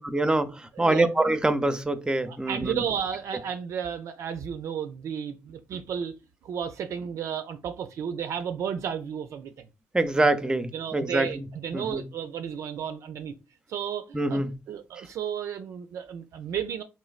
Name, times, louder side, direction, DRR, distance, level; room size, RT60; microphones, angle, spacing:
voice 1, 0.0-2.8 9.9-11.5 11.7-12.0 14.1-14.5, right 2 dB, 15° right, 0.5 m, -25 dB
voice 2, 0.8-1.1 2.3-6.1 6.4-9.5 10.7-13.3 13.7-16.8, right 8 dB, 65° right, 0.3 m, -33 dB
3.2 x 3.1 x 2.3 m
supercardioid pair, 60°, 5 cm